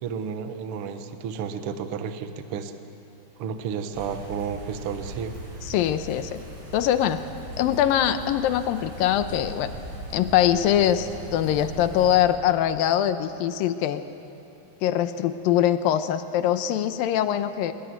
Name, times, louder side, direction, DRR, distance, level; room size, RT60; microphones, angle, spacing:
voice 1, 0.0-2.7 3.4-5.3, right 7 dB, 85° right, 8 dB, 1.2 m, -32 dB
sound 1, 3.9-12.2, right 1 dB, 50° right, 7.5 m, -39 dB
voice 2, 5.6-6.4 6.7-7.2 7.6-9.7 10.1-14.0 14.8-17.7, left 11 dB, 75° left, 10 dB, 2.4 m, -23 dB
23.5 x 22.5 x 9.5 m, 2.7 s
omnidirectional pair, 4.5 m